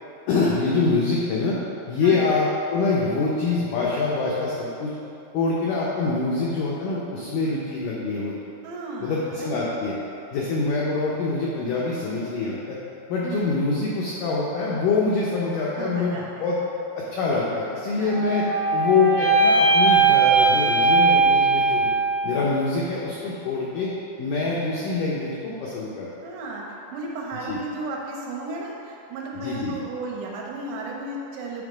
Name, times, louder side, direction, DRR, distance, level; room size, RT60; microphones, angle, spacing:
voice 1, 0.3-1.6 1.9-4.9 5.3-8.4 9.0-10.0 10.3-12.8 13.1-16.6 17.0-18.4 18.7-21.9 22.2-23.9 24.2-26.1 27.5-27.6 29.4-29.8, left 3 dB, 85° left, -5 dB, 1.8 m, -25 dB
voice 2, 8.6-9.6 10.4-10.5 13.2-13.5 15.8-16.6 18.0-18.2 26.2-26.7 26.9-31.6, right 2 dB, 80° right, -2 dB, 3.0 m, -34 dB
sound 1, 18.0-22.3, right 4 dB, 65° left, 1.8 m, -19 dB
8.7 x 3.6 x 5.0 m, 2.7 s
omnidirectional pair, 4.8 m